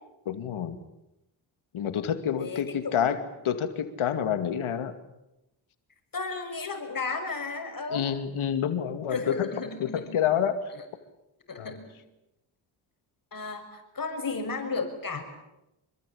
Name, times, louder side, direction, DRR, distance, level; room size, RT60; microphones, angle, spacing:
voice 1, 0.3-0.8 1.7-4.9 7.9-9.5 9.8-10.6 11.6-11.7, left 9 dB, 75° left, 9 dB, 2.5 m, -28 dB
voice 2, 2.4-3.2 6.1-8.1 9.1-10.2 11.5-11.9 13.3-15.2, left 4 dB, 40° left, 6 dB, 6.2 m, -34 dB
26.5 x 23.5 x 8.7 m, 0.91 s
cardioid pair, 65°, 49 cm